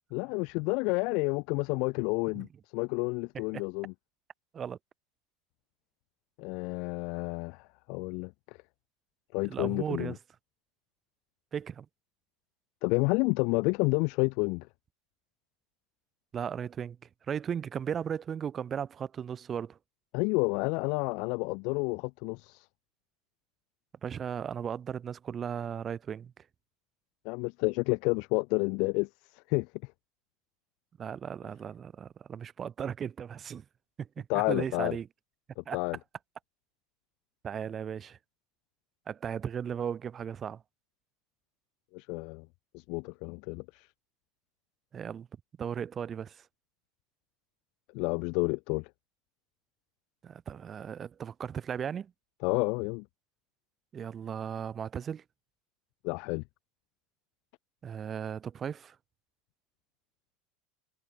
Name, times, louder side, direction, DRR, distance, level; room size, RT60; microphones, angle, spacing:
voice 1, 0.1-2.5 2.7-3.9 6.4-8.6 9.3-10.1 12.8-14.7 20.1-22.7 27.2-29.1 29.3-29.7 34.3-35.0 35.6-36.0 41.9-42.5 42.7-43.9 47.9-48.9 52.4-53.0 56.0-56.4, left 31 dB, 60° left, 0.5 m, -30 dB
voice 2, 9.5-10.2 11.5-11.9 16.3-17.0 17.3-19.8 24.0-26.5 31.0-33.6 34.0-35.1 35.7-35.8 37.4-38.2 39.1-40.6 44.9-45.3 45.6-46.5 50.2-52.1 53.9-55.2 57.8-59.0, right 8 dB, 30° right, 1.9 m, -36 dB
supercardioid pair, 115°, 0 cm